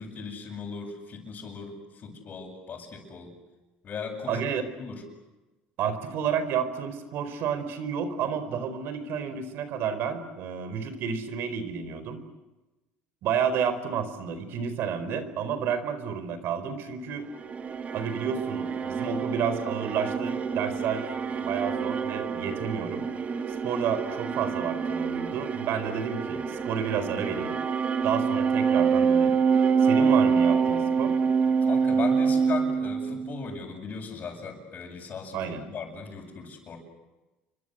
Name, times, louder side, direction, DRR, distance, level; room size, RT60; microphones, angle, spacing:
voice 1, 0.0-3.4 3.8-4.4 4.8-5.0 31.6-35.4 35.7-36.8, left 5 dB, 40° left, -5 dB, 7.8 m, -38 dB
voice 2, 4.3-4.6 5.8-12.2 13.2-17.3 17.9-23.0 23.5-27.5 28.0-29.4 29.8-31.2 35.3-35.6, right 7 dB, 60° right, 11 dB, 4.6 m, -31 dB
sound 1, 17.2-33.5, right 5 dB, 35° right, 2.0 m, -26 dB
29.5 x 24.5 x 8.1 m, 1.1 s
supercardioid pair, 100°, 4 cm